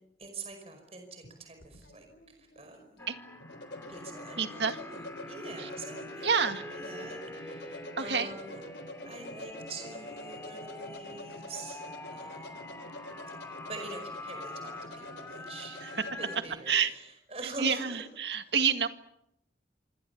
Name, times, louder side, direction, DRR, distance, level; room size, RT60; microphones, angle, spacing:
voice 1, 0.2-3.0 3.9-8.6 9.0-11.8 12.1-12.9 13.5-18.0 18.3-18.5, right 3 dB, 35° right, 5 dB, 5.2 m, -45 dB
sound 1, 1.2-16.6, left 1 dB, 90° left, 3.6 m, -46 dB
sound 2, 3.0-16.4, left 2 dB, 15° left, 2.8 m, -45 dB
voice 2, 4.4-4.8 5.6-5.7 6.2-6.6 8.0-8.3 15.8-15.9 16.7-16.9 17.6-18.9, right 6 dB, 85° right, 8 dB, 1.9 m, -28 dB
26.5 x 26.0 x 7.1 m, 0.79 s
head